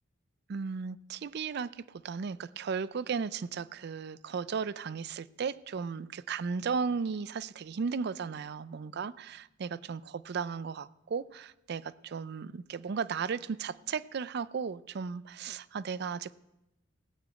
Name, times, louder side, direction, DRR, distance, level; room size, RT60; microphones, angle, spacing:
voice 1, 0.5-16.3, right 5 dB, 55° right, 18 dB, 0.4 m, -35 dB
16.5 x 6.3 x 8.5 m, 0.89 s
head